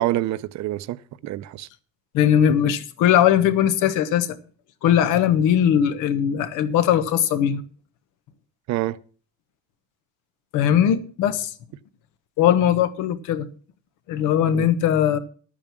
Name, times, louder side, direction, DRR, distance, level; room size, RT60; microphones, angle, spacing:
voice 1, 0.0-1.7 8.7-9.0 14.5-14.7, right 15 dB, 65° right, 0.7 m, -26 dB
voice 2, 2.1-4.4 4.8-7.6 10.5-11.5 12.4-13.5 14.1-15.2, left 9 dB, 90° left, 1.3 m, -19 dB
12.0 x 8.8 x 6.0 m
cardioid pair, 135°, 30 cm